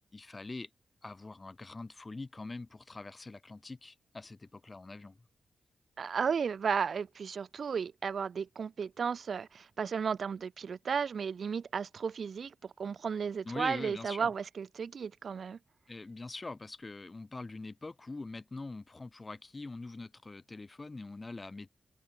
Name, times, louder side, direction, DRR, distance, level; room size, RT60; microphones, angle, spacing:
voice 1, 0.1-0.7 1.0-5.2 13.4-14.3 15.9-21.7, left 3 dB, 30° left, 1.7 m, -43 dB
voice 2, 6.0-15.6, right 6 dB, 65° right, 0.7 m, -34 dB
cardioid pair, 85°, 0 cm